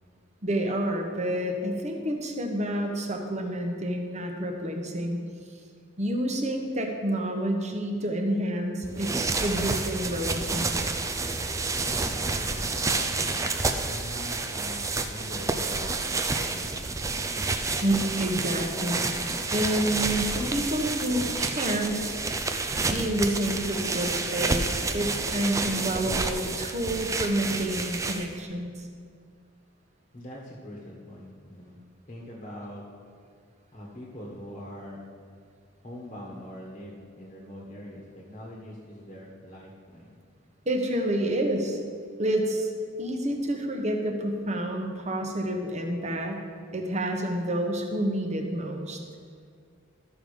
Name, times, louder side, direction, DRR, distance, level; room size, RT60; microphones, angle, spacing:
voice 1, 0.4-5.2 6.0-9.1 9.4-11.2 17.8-22.2 22.8-28.9 40.7-41.8 42.2-42.7 43.0-46.4 46.7-49.0, right 1 dB, 35° right, 2 dB, 1.0 m, -29 dB
sound 1, 8.8-28.4, right 3 dB, 15° right, 0.4 m, -29 dB
voice 2, 11.9-13.1 13.5-17.1 30.1-31.8 32.1-32.8 33.7-35.1 35.8-40.2, equal, 30° left, -3 dB, 1.3 m, -43 dB
13.0 x 5.4 x 5.0 m, 2.1 s
head